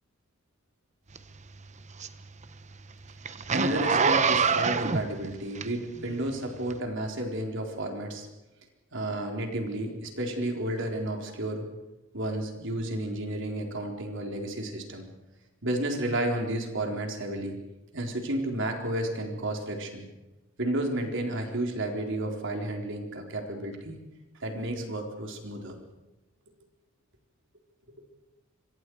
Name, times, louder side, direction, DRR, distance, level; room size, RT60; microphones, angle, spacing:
Zipper (clothing), 1.2-6.1 6.7-6.8, right 5 dB, 35° right, 1.0 m, -26 dB
voice 1, 3.5-8.3 8.9-11.7 12.1-15.1 15.6-17.6 17.9-20.1 20.6-24.0 24.4-25.8, right 1 dB, 60° right, 2 dB, 4.1 m, -32 dB
26.0 x 24.5 x 4.8 m, 1.0 s
head